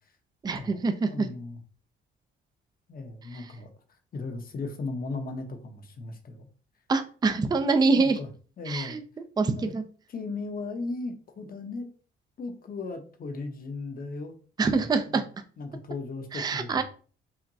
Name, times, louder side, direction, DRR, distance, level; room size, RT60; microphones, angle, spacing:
voice 1, 0.4-1.3 6.9-8.2 8.7-9.0 9.4-9.5 9.7-9.8 14.6-15.2 16.3-16.8, right 4 dB, 20° right, 8 dB, 0.4 m, -25 dB
voice 2, 1.1-1.6 2.9-3.7 4.1-6.5 7.3-7.5 7.9-8.3 8.6-9.0 9.4-9.7 10.1-11.9 12.4-14.3 14.7-15.2 15.6-16.8, left 3 dB, 45° left, 6 dB, 0.8 m, -36 dB
5.7 x 2.1 x 2.6 m, 0.40 s
cardioid pair, 90°, 20 cm